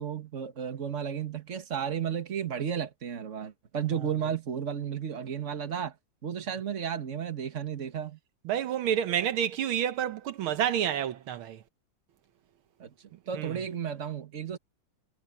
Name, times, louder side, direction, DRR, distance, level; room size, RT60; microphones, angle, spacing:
voice 1, 0.0-5.9 6.2-8.2 12.8-12.9 13.3-14.6, right 8 dB, 35° right, 1.8 m, -33 dB
voice 2, 8.5-11.6 13.3-13.5, right 9 dB, 80° right, 1.8 m, -29 dB
omnidirectional pair, 2.3 m